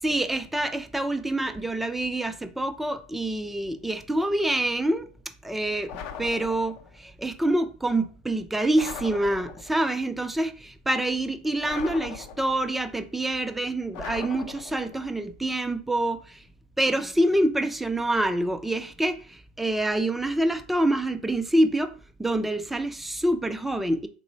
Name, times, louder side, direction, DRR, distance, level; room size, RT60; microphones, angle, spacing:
voice 1, 0.0-5.1 5.4-5.9 6.2-16.4 16.8-21.9 22.2-24.1, right 1 dB, 5° right, 0.4 m, -26 dB
sound 1, 5.9-7.0 8.7-9.9 11.6-12.8 13.9-15.1, left 6 dB, 55° left, 0.6 m, -39 dB
3.6 x 2.1 x 3.8 m
hypercardioid pair, 95°, 3 cm